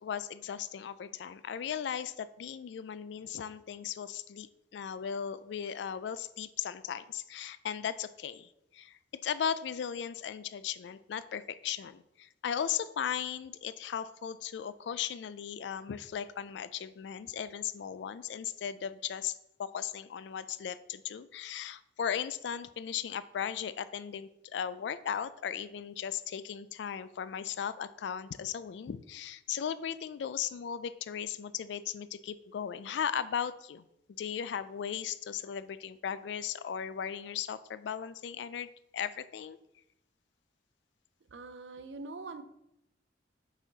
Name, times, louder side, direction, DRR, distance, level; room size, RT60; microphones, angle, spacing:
voice 1, 0.0-33.8 34.2-39.6, left 8 dB, 70° left, 15 dB, 0.3 m, -37 dB
voice 2, 41.3-42.4, right 3 dB, 75° right, 10 dB, 0.6 m, -43 dB
6.1 x 4.2 x 3.9 m, 0.81 s
head